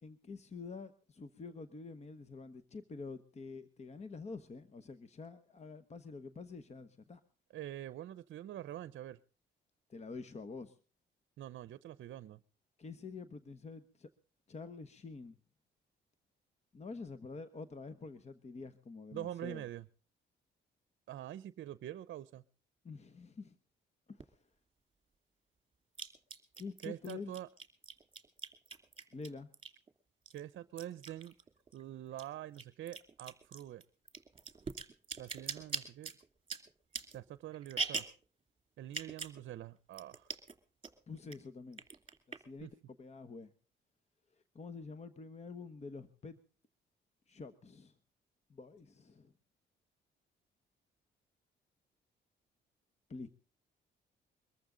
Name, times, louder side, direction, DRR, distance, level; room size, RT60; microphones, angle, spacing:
voice 1, 0.0-7.2 9.9-10.8 12.8-14.1 14.5-15.3 16.7-19.6 22.8-23.6 24.1-24.4 26.6-27.3 29.1-29.5 41.1-41.8 42.3-42.7 43.0-43.5 44.5-46.4 47.3-47.9 48.5-49.3 53.1-53.3, left 4 dB, 35° left, 11 dB, 1.1 m, -47 dB
voice 2, 7.5-9.2 11.4-12.4 19.1-19.9 21.1-22.4 26.8-27.5 30.3-31.3 31.7-33.8 35.2-36.1 37.1-38.1 38.8-40.3 42.6-42.7, right 12 dB, 65° right, 17 dB, 0.7 m, -45 dB
sound 1, 24.2-24.3 25.9-29.9 30.3-31.8 32.1-38.2 38.8-39.4 39.7-39.8 39.9-40.5 40.8-41.4 41.7-42.6, right 4 dB, 25° right, 2.5 m, -42 dB
23.0 x 14.0 x 3.8 m, 0.38 s
cardioid pair, 90°, 20 cm